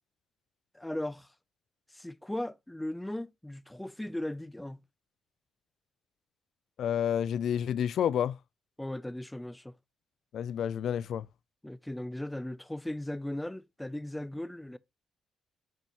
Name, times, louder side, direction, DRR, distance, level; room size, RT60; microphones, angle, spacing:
voice 1, 0.7-1.3 1.9-4.8 8.8-9.8 11.6-14.8, left 1 dB, 5° left, 0.5 m, -37 dB
voice 2, 6.8-8.4 10.3-11.3, left 9 dB, 65° left, 0.3 m, -29 dB
8.9 x 5.5 x 2.9 m
cardioid pair, 90°, 0 cm